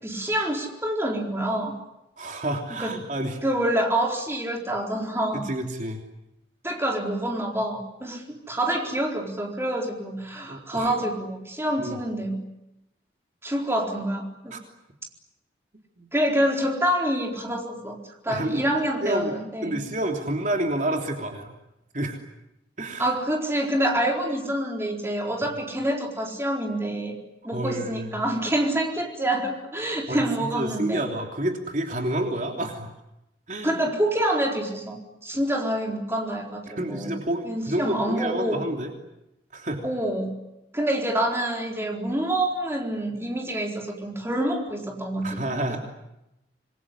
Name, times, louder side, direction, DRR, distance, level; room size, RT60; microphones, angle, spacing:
voice 1, 0.0-1.8 2.8-2.9 3.4-5.5 6.6-12.4 13.4-14.6 16.1-19.8 23.0-27.2 27.4-31.0 33.6-37.1 37.4-38.6 39.8-40.3 40.7-45.4, right 1 dB, 15° right, 1 dB, 4.3 m, -27 dB
voice 2, 2.2-3.4 5.3-6.0 10.5-10.9 11.8-12.0 14.5-14.6 16.0-16.1 18.3-18.7 19.0-19.3 19.6-21.5 21.9-22.2 22.8-23.1 27.5-28.1 30.1-32.9 33.5-33.8 36.7-38.9 39.5-39.8 45.2-45.8, right 1 dB, 45° right, 2 dB, 3.2 m, -29 dB
27.0 x 22.5 x 9.9 m, 0.88 s
head